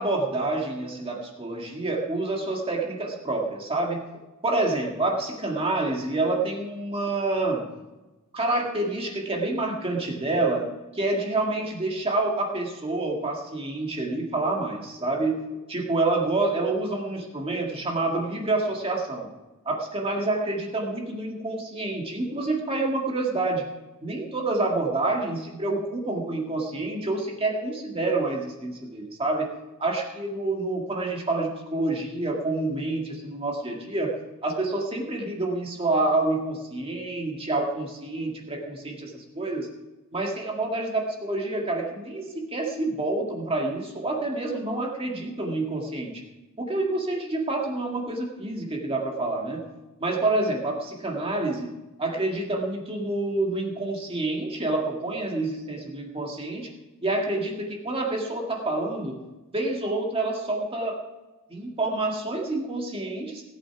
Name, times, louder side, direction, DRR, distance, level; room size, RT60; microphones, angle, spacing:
voice 1, 0.0-4.0 4.4-7.6 8.3-10.7 10.9-15.4 15.7-19.3 19.7-23.6 24.0-29.5 29.8-34.1 34.4-39.7 40.1-46.2 46.6-49.6 50.0-51.7 52.0-56.7 57.0-59.2 59.5-61.0 61.5-63.4, right 2 dB, 25° right, 0 dB, 1.9 m, -28 dB
18.0 x 8.5 x 6.0 m, 1.1 s
head